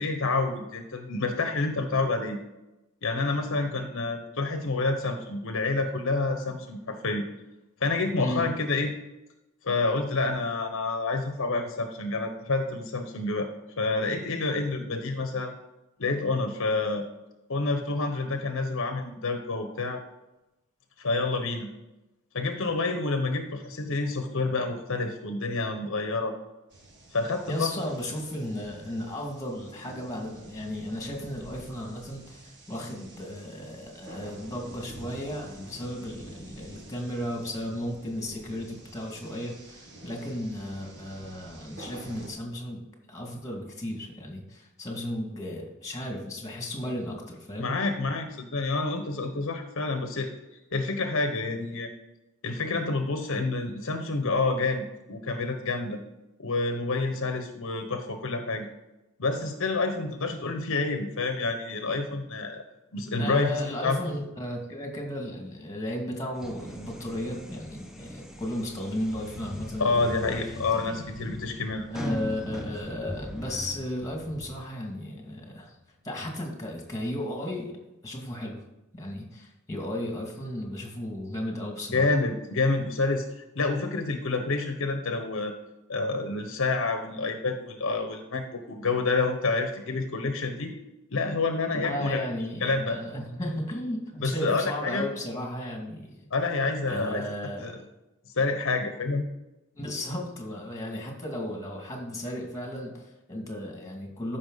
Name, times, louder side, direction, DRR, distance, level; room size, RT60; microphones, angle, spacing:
voice 1, 0.0-2.4 3.0-7.2 7.8-8.9 9.6-13.5 13.8-15.5 16.0-17.1 17.5-20.0 21.0-21.7 22.3-26.4 27.1-27.7 47.6-50.3 50.7-51.9 52.4-56.0 56.4-58.7 59.2-62.6 62.9-64.1 69.8-71.9 81.9-83.3 83.5-85.5 85.9-90.7 91.1-92.2 92.6-93.0 94.2-95.1 96.3-97.2 97.6-97.8 98.3-99.2, left 3 dB, 60° left, 6 dB, 0.9 m, -28 dB
sound 1, 26.7-42.3, right 1 dB, 55° right, 1.7 m, -48 dB
voice 2, 27.5-47.7 63.2-70.5 70.7-71.0 71.9-75.7 76.0-77.7 78.0-78.6 78.9-82.1 91.8-96.3 96.8-97.8 99.8-104.4, left 1 dB, 15° left, 1 dB, 2.2 m, -35 dB
sound 2, 66.3-74.6, equal, ahead, 0.8 m, -41 dB
sound 3, 69.0-74.7 75.1-75.4 75.7-75.8, left 2 dB, 30° right, 4.0 m, -44 dB
13.5 x 5.7 x 4.0 m, 0.97 s
head